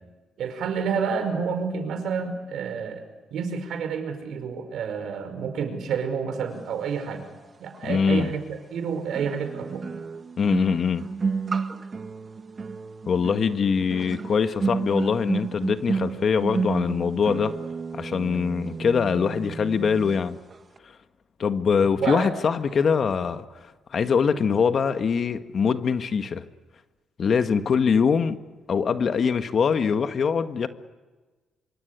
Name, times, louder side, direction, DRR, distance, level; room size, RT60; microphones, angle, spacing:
voice 1, 0.4-7.3 7.6-9.9 22.0-22.3, right 6 dB, 70° right, 8 dB, 5.2 m, -29 dB
sound 1, 7.7-7.8 9.1-20.2 20.5-20.8, right 4 dB, 35° right, 1.7 m, -31 dB
voice 2, 7.8-8.3 10.4-11.0 13.1-17.5 17.9-20.4 21.4-23.4 23.9-26.4 27.2-28.4 28.7-30.7, left 6 dB, 50° left, 9 dB, 1.8 m, -23 dB
26.0 x 24.5 x 8.3 m, 1.2 s
cardioid pair, 90°, 0 cm